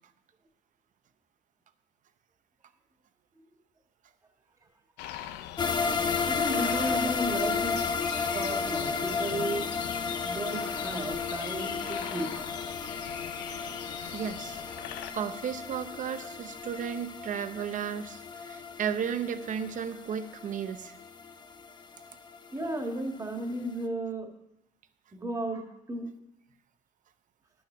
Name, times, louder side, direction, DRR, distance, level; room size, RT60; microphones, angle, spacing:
sound 1, 5.0-15.1, left 11 dB, 90° left, 0.7 m, -42 dB
sound 2, 5.6-22.7 23.0-23.1 23.5-23.6, left 5 dB, 25° left, 0.8 m, -33 dB
voice 1, 6.3-7.8 8.3-9.7 10.2-12.5 14.0-14.2 22.5-24.3 25.1-26.1, right 1 dB, 20° right, 3 dB, 1.8 m, -34 dB
voice 2, 14.0-14.6 15.1-20.9, right 8 dB, 50° right, 11 dB, 0.8 m, -34 dB
10.5 x 7.1 x 6.1 m, 0.82 s
cardioid pair, 110°, 17 cm